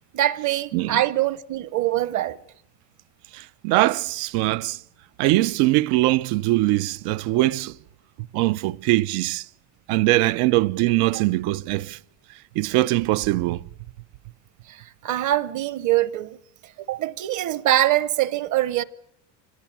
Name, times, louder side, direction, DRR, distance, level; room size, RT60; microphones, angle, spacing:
voice 1, 0.1-2.4 11.1-11.2 14.7-16.4 16.9-18.8, right 13 dB, 35° right, 0.9 m, -23 dB
voice 2, 3.3-4.8 5.2-7.7 8.3-9.4 9.9-12.0 12.5-13.6, right 18 dB, 80° right, 0.9 m, -22 dB
26.0 x 19.0 x 8.8 m
cardioid pair, 180°, 49 cm